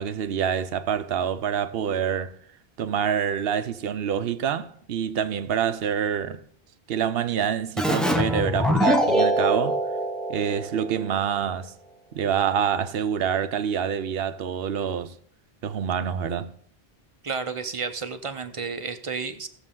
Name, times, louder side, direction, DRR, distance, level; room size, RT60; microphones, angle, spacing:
voice 1, 0.0-2.4 2.8-6.4 6.9-9.8 10.3-11.7 12.1-15.2 15.6-16.5, right 8 dB, 70° right, 0.9 m, -26 dB
Keyboard (musical), 7.8-11.1, equal, ahead, 0.6 m, -23 dB
voice 2, 17.2-19.5, right 5 dB, 35° right, 0.7 m, -31 dB
17.0 x 7.0 x 3.7 m
omnidirectional pair, 1.1 m